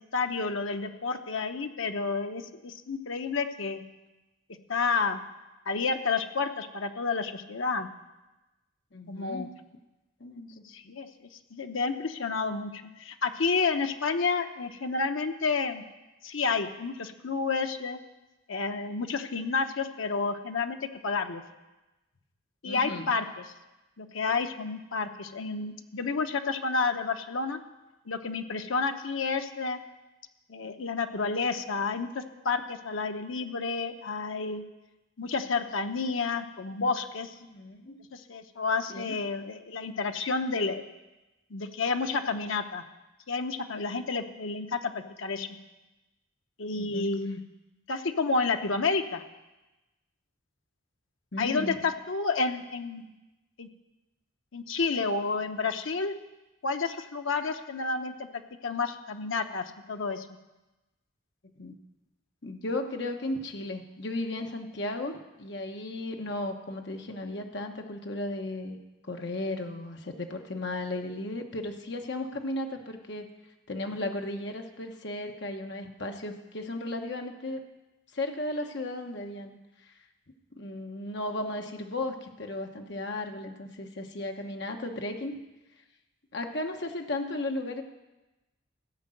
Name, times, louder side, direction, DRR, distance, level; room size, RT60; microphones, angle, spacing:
voice 1, 0.1-3.8 4.7-5.2 5.7-7.9 9.1-9.5 10.7-11.1 11.5-15.8 16.2-18.0 18.5-20.8 21.0-21.4 22.6-23.4 24.0-27.6 28.1-29.8 30.5-34.6 35.2-37.3 38.1-40.8 41.5-42.8 43.3-44.9 45.2-45.5 46.6-47.4 47.9-49.2 51.4-53.1 53.6-53.7 54.5-56.1 56.6-58.3 58.6-60.2, left 4 dB, 80° left, 7 dB, 0.8 m, -30 dB
voice 2, 8.9-9.6 10.2-10.6 22.6-23.1 37.5-38.0 38.9-39.2 46.7-47.1 51.3-51.7 61.6-61.8 62.4-68.8 69.0-73.3 73.7-77.6 78.1-79.9 80.5-85.4 86.3-87.8, left 2 dB, 55° left, 4 dB, 1.1 m, -35 dB
14.5 x 5.3 x 7.7 m, 1.0 s
head